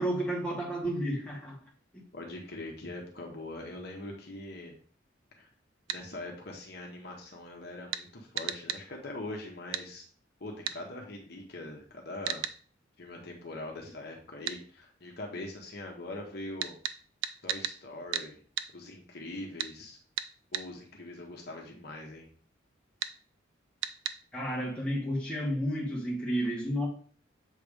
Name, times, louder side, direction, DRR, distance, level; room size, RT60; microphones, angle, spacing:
voice 1, 0.0-1.6 24.3-26.9, equal, 5° left, -4 dB, 1.8 m, -31 dB
voice 2, 2.1-4.7 5.4-5.5 5.9-10.1 10.4-12.4 13.0-16.7 17.4-18.4 18.7-20.0 20.5-22.2, left 2 dB, 55° left, 0 dB, 1.2 m, -42 dB
sound 1, 5.9-6.0 7.9-8.1 8.4-8.8 9.7-9.9 10.7-10.8 12.2-12.6 14.5-14.6 16.6-17.8 18.1-18.3 18.6-18.7 19.6-19.7 20.2-20.7 23.0-23.1 23.8-24.2, right 10 dB, 80° right, 0.5 m, -34 dB
7.5 x 3.4 x 5.1 m, 0.44 s
head